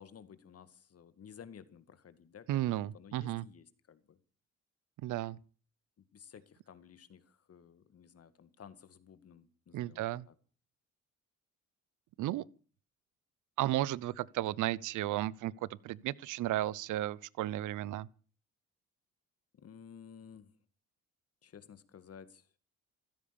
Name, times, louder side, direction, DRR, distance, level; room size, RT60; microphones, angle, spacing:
voice 1, 0.0-4.2 6.1-10.3 19.5-20.5 21.4-22.5, left 7 dB, 50° left, 2.0 m, -54 dB
voice 2, 2.5-3.4 5.0-5.4 9.7-10.2 12.2-12.4 13.6-18.1, right 14 dB, 80° right, 0.7 m, -34 dB
15.5 x 13.5 x 7.0 m
cardioid pair, 90°, 30 cm